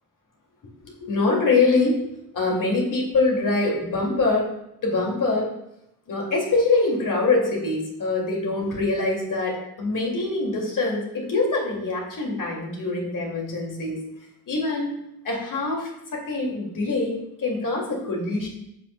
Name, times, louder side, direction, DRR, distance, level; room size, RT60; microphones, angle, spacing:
voice 1, 0.8-2.0 2.3-4.5 4.8-5.5 6.1-14.0 14.5-15.0 15.2-18.5, left 3 dB, 50° left, -1 dB, 2.4 m, -24 dB
10.5 x 6.0 x 2.2 m, 0.82 s
supercardioid pair, 55°, 41 cm